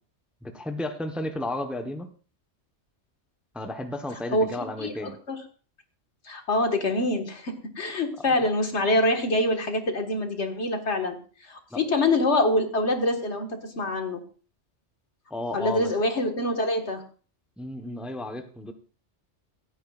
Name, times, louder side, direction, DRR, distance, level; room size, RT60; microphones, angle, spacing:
voice 1, 0.4-2.1 3.5-5.2 11.7-11.8 15.3-15.9 17.6-18.7, left 1 dB, ahead, 6 dB, 1.0 m, -33 dB
voice 2, 4.3-5.4 6.3-11.2 11.5-14.2 15.5-17.0, left 2 dB, 70° left, 4 dB, 2.0 m, -25 dB
27.0 x 9.2 x 2.5 m, 0.39 s
omnidirectional pair, 1.2 m